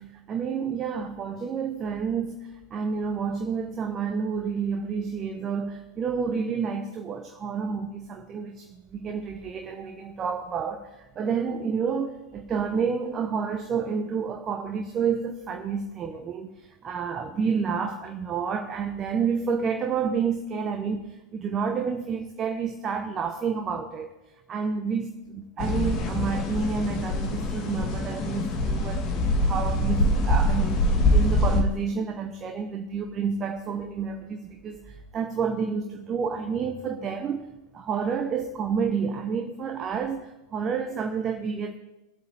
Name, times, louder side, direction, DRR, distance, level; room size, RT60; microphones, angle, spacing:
voice 1, 0.0-24.1 24.5-41.7, right 6 dB, 25° right, 0.9 m, -29 dB
sound 1, 25.6-31.6, left 1 dB, 40° left, 2.0 m, -24 dB
21.5 x 8.1 x 3.3 m
figure-of-eight pair, 90°, 0 cm